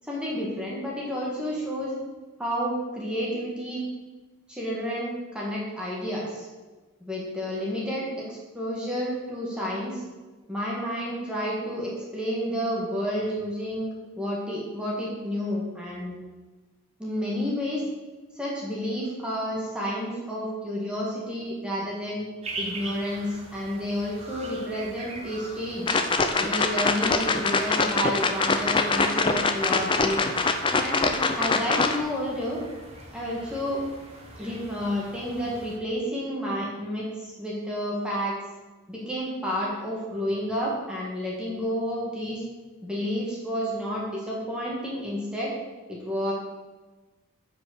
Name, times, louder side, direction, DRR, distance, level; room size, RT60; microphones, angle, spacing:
voice 1, 0.0-1.9 2.4-3.8 4.5-6.5 7.0-10.0 10.5-13.9 14.2-16.1 17.0-17.9 18.3-22.3 22.6-26.0 26.4-30.2 30.8-32.6 33.1-33.8 34.4-38.3 38.9-42.4 42.8-45.5 45.9-46.3, equal, 5° right, -5 dB, 1.6 m, -30 dB
sound 1, 22.4-35.8, right 2 dB, 30° right, 1.1 m, -42 dB
sound 2, 25.9-32.0, left 3 dB, 20° left, 0.5 m, -24 dB
7.6 x 5.1 x 6.5 m, 1.2 s
head